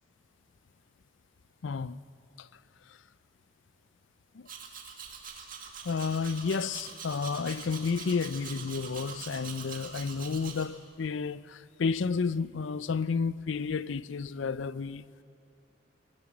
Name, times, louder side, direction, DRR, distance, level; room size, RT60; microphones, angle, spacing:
voice 1, 1.6-2.0 2.4-2.5 4.3-4.5 5.8-15.0, left 5 dB, 75° left, 0.5 m, -31 dB
Domestic sounds home sounds, 4.5-10.7, right 6 dB, 45° right, 2.2 m, -44 dB
20.5 x 18.0 x 7.2 m
head